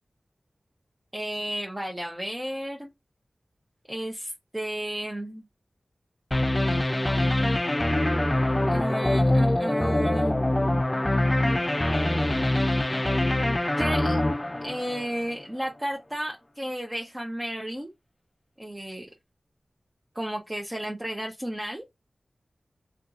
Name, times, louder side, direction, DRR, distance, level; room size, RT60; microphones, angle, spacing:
voice 1, 1.1-2.9 3.9-5.4 8.7-10.4 13.8-14.2 14.6-17.9 18.6-19.1 20.1-21.8, right 1 dB, 20° right, 0.7 m, -33 dB
sound 1, 6.3-15.4, left 1 dB, 25° left, 0.4 m, -24 dB
2.7 x 2.4 x 3.6 m
wide cardioid pair, 55°, 0 cm